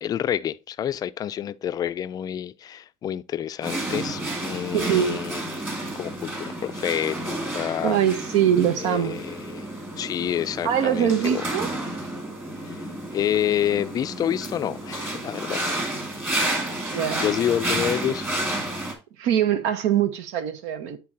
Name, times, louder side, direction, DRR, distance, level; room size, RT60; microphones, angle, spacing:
voice 1, 0.0-5.4 5.9-8.0 8.8-9.7 10.0-11.4 12.6-15.8 16.9-18.3, left 10 dB, 35° left, 0.4 m, -28 dB
sound 1, 3.6-18.9, right 1 dB, 20° right, 2.0 m, -31 dB
voice 2, 4.7-5.2 7.8-9.2 10.6-11.7 16.9-17.2 19.2-21.0, right 9 dB, 75° right, 1.0 m, -22 dB
9.4 x 3.8 x 2.7 m
cardioid pair, 125°, 11 cm